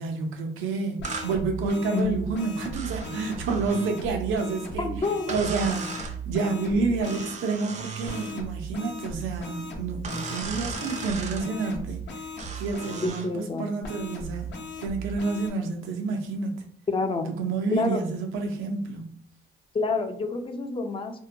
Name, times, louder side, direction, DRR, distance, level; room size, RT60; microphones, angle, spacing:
voice 1, 0.0-5.0 5.3-12.2 12.6-14.5 14.8-16.5 17.4-19.1, right 4 dB, 90° right, 4 dB, 0.6 m, -29 dB
sound 1, 1.0-7.4 8.0-13.1 13.8-15.5, right 2 dB, 60° left, 0.7 m, -37 dB
sound 2, 1.0-1.3 2.7-3.9 5.3-6.2 7.0-8.4 10.0-11.5 12.4-13.3, right 5 dB, 35° right, 0.4 m, -37 dB
voice 2, 1.9-2.2 4.8-5.4 13.0-13.7 16.9-17.3 17.7-18.0 19.7-21.2, left 3 dB, 25° left, 6 dB, 0.4 m, -28 dB
2.7 x 2.1 x 2.6 m, 0.62 s
cardioid pair, 90°, 20 cm